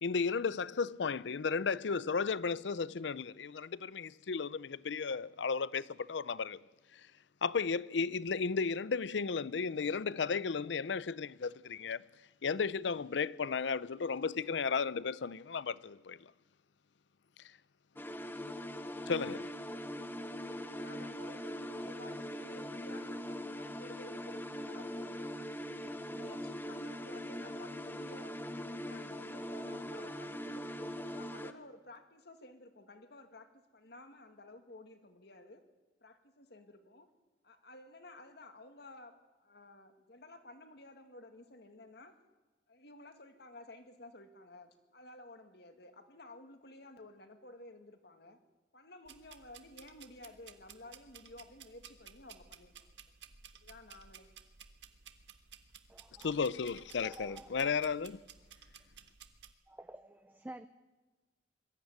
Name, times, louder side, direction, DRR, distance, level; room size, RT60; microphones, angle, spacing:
voice 1, 0.0-6.6 6.9-7.0 7.4-12.1 12.4-16.3 19.1-19.5 56.2-58.2, left 5 dB, 80° left, 0.6 m, -34 dB
sound 1, 18.0-31.5, equal, 10° left, 1.0 m, -41 dB
voice 2, 20.4-25.4 25.9-30.7 31.0-35.6 36.0-37.1 37.4-39.1 39.4-42.2 42.7-48.4 48.7-53.0 53.6-54.4, left 2 dB, 65° left, 2.3 m, -54 dB
sound 2, 49.1-59.5, right 7 dB, 75° right, 1.5 m, -56 dB
voice 3, 55.9-56.4 57.0-57.7 59.7-60.7, right 1 dB, 10° right, 0.6 m, -50 dB
22.0 x 14.0 x 9.6 m
head